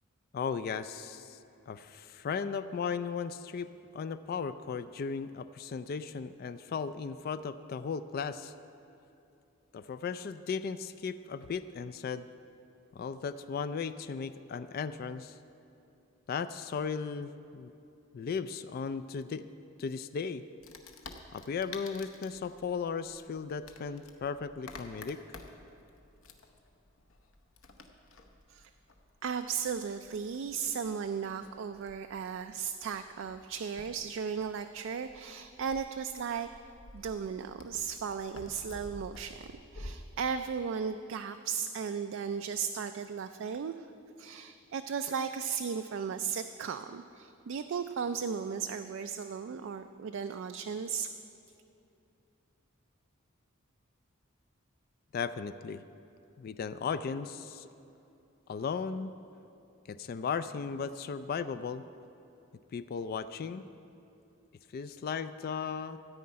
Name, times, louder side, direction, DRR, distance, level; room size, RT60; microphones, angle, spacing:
voice 1, 0.3-1.4 1.7-8.5 9.7-12.3 12.9-15.4 16.3-17.7 18.1-19.5 19.8-20.4 21.3-25.2 55.1-55.8 56.4-57.7 58.5-59.1 59.9-61.8 62.7-63.6 64.7-66.0, left 6 dB, 45° left, 12 dB, 0.3 m, -36 dB
Wood, 20.6-39.9, left 2 dB, 70° left, 0.9 m, -52 dB
voice 2, 29.2-36.5 36.9-43.9 44.2-51.1, right 6 dB, 65° right, 8 dB, 0.3 m, -36 dB
13.5 x 5.6 x 8.6 m, 2.7 s
head